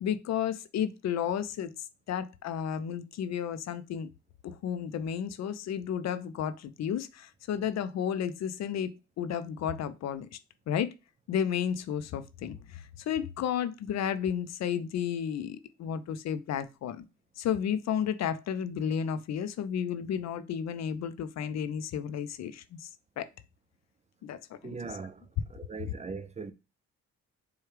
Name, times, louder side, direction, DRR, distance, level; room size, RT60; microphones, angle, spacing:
voice 1, 0.0-1.7 2.1-4.1 4.4-10.4 10.7-10.9 11.3-17.0 17.4-22.9 23.2-23.3 24.2-24.4 24.6-24.8, left 8 dB, 60° left, 0.5 m, -32 dB
voice 2, 24.6-26.5, right 4 dB, 25° right, 0.5 m, -40 dB
4.6 x 2.3 x 3.2 m
cardioid pair, 90°, 30 cm